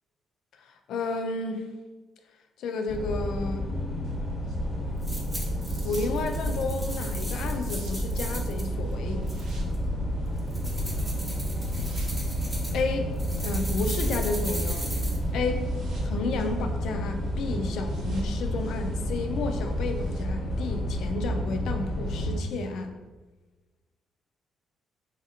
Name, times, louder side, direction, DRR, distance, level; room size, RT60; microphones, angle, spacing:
voice 1, 0.5-1.7 2.6-3.8 5.8-9.3 12.7-14.9 15.3-15.7 16.0-23.0, left 3 dB, 80° left, 6 dB, 0.3 m, -32 dB
sound 1, 2.9-22.4, equal, 25° left, 0.6 m, -30 dB
sound 2, 4.0-20.2, right 1 dB, 85° right, 0.6 m, -42 dB
sound 3, 5.0-8.7 9.3-9.8 10.4-12.8 13.2-15.2, right 1 dB, 20° right, 0.7 m, -39 dB
3.2 x 2.5 x 2.7 m, 1.2 s
cardioid pair, 90°, 0 cm